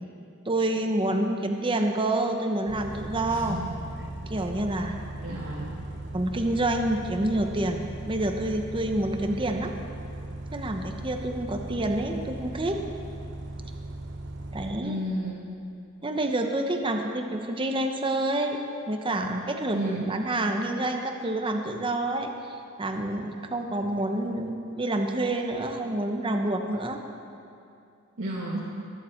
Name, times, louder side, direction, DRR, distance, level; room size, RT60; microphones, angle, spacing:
voice 1, 0.5-3.6 4.3-5.0 6.1-9.7 10.5-12.8 14.5-15.0 16.0-18.6 18.9-22.3 22.8-27.0, right 1 dB, 25° right, 4 dB, 0.9 m, -28 dB
Bus, 2.7-14.7, right 2 dB, 55° right, 1.0 m, -38 dB
voice 2, 3.3-3.8 5.2-5.8 14.8-15.4 19.7-20.0 28.2-28.6, right 1 dB, 80° right, -7 dB, 1.9 m, -32 dB
20.5 x 10.5 x 4.5 m, 2.6 s
head